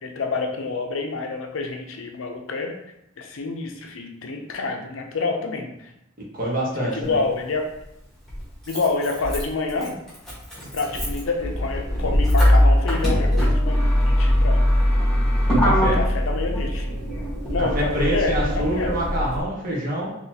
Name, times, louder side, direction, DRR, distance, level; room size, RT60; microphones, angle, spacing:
voice 1, 0.0-2.7 3.2-5.9 6.8-7.7 8.7-10.0 10.7-14.7 15.9-16.9 17.4-18.9, left 3 dB, 80° left, 4 dB, 0.5 m, -28 dB
voice 2, 6.3-7.2 15.5-16.0 17.6-20.2, right 1 dB, 45° right, -4 dB, 1.1 m, -26 dB
Motor vehicle (road), 7.0-7.1 8.3-19.4, equal, 5° left, 1.3 m, -21 dB
4.0 x 2.9 x 2.8 m, 0.84 s
head